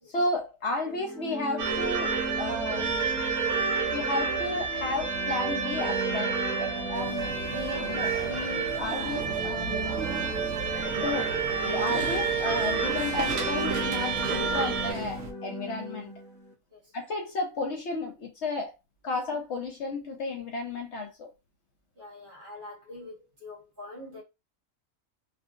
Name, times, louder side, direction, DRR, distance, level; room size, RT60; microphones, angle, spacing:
voice 1, 0.1-2.9 3.9-9.7 10.9-11.3 11.6-16.1 16.9-18.7 19.0-21.3, left 2 dB, 60° left, 0.8 m, -33 dB
sound 1, 0.8-16.5, equal, 5° left, 0.4 m, -38 dB
sound 2, 1.6-14.9, right 5 dB, 85° right, 1.1 m, -30 dB
sound 3, 6.9-15.3, right 4 dB, 65° right, 1.1 m, -38 dB
voice 2, 22.0-24.2, left 2 dB, 40° right, 1.3 m, -45 dB
2.7 x 2.7 x 2.6 m
omnidirectional pair, 1.5 m